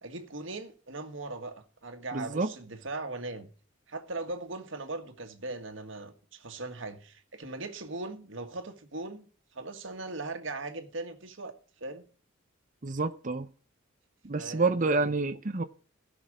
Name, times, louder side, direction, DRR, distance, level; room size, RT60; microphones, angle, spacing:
voice 1, 0.0-3.5 3.9-9.3 9.5-11.5 11.8-12.1 14.3-15.1, right 2 dB, 70° right, 1.7 m, -39 dB
voice 2, 2.1-2.5 12.8-13.5 14.2-15.6, right 3 dB, 40° right, 0.7 m, -28 dB
16.0 x 6.2 x 4.9 m
head